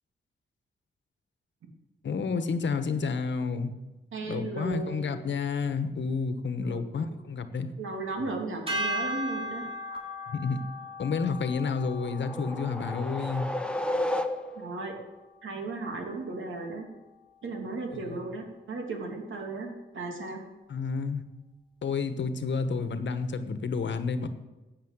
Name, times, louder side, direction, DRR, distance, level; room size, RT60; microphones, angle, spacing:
voice 1, 2.0-3.7 4.2-7.7 10.3-10.6 11.0-13.5 17.9-18.2 20.7-21.2 21.8-24.3, left 5 dB, 70° left, 10 dB, 1.2 m, -30 dB
voice 2, 4.1-5.1 6.6-6.9 7.8-9.7 14.5-14.9 15.4-16.8 17.4-20.4, right 3 dB, 80° right, 2 dB, 2.9 m, -35 dB
sound 1, 8.7-15.0, equal, 30° right, 3.7 m, -37 dB
sound 2, 11.6-14.8, left 1 dB, 5° left, 0.9 m, -33 dB
13.5 x 8.7 x 8.1 m, 1.1 s
cardioid pair, 100°, 20 cm